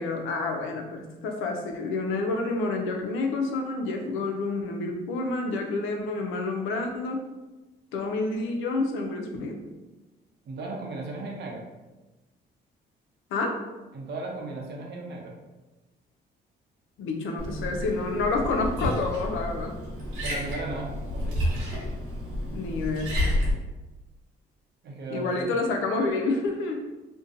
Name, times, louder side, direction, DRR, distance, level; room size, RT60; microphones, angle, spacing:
voice 1, 0.0-7.2 7.9-9.6 13.3-13.6 17.0-19.8 22.5-23.1 25.1-26.8, left 3 dB, 85° left, 3 dB, 0.5 m, -28 dB
voice 2, 10.4-11.6 13.9-15.3 20.2-21.5 24.8-25.5, right 2 dB, 60° right, 0 dB, 0.7 m, -36 dB
Liquid, 17.4-23.5, left 1 dB, 90° right, 1.1 m, -30 dB
2.6 x 2.2 x 2.5 m, 1.1 s
cardioid pair, 90°, 20 cm